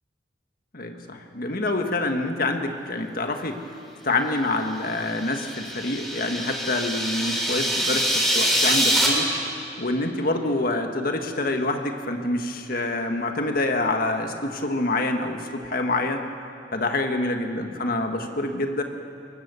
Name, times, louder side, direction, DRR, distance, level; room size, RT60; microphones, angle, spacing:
voice 1, 0.7-3.6 4.0-9.3 9.8-16.3 16.7-18.8, left 2 dB, 55° left, 5 dB, 1.7 m, -26 dB
sound 1, 4.9-9.1, right 1 dB, ahead, 4.2 m, -24 dB
23.0 x 19.5 x 7.0 m, 2.6 s
head